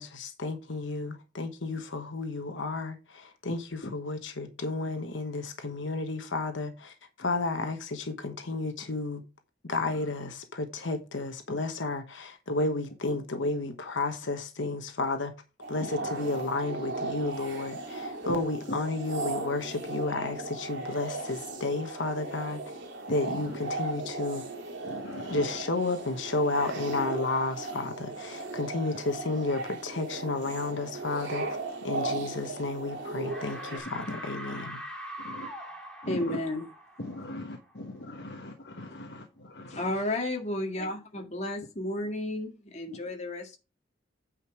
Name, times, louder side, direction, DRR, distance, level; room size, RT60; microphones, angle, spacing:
voice 1, 0.0-9.2 9.6-15.3 15.7-22.6 23.1-24.4 25.3-31.6 31.8-34.8, left 2 dB, 75° left, 1.1 m, -32 dB
sound 1, 15.6-33.8, right 2 dB, 70° right, 2.6 m, -37 dB
sound 2, 24.0-31.7, left 3 dB, 20° right, 2.3 m, -59 dB
voice 2, 24.8-25.5 32.1-32.2 35.2-35.5 36.0-36.4 37.0-40.0 42.9-43.0, left 1 dB, 60° left, 1.1 m, -40 dB
sound 3, 32.6-32.9 33.2-37.8, equal, 5° left, 1.9 m, -43 dB
voice 3, 36.1-36.6 39.7-43.6, left 1 dB, 35° left, 1.9 m, -32 dB
9.0 x 5.2 x 4.9 m
head